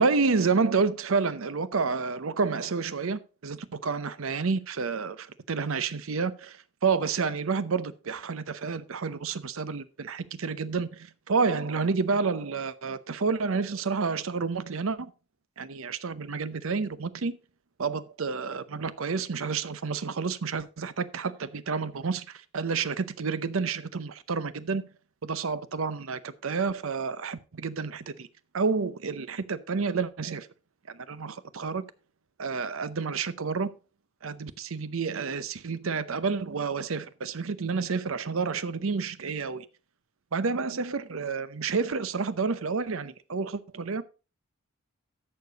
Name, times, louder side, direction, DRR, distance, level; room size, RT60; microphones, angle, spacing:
voice 1, 0.0-15.1 15.6-17.3 17.8-24.8 25.2-28.3 28.5-30.5 30.9-31.8 32.4-33.7 34.2-39.7 40.3-44.0, right 4 dB, 70° right, 0.7 m, -29 dB
11.5 x 6.7 x 4.0 m
head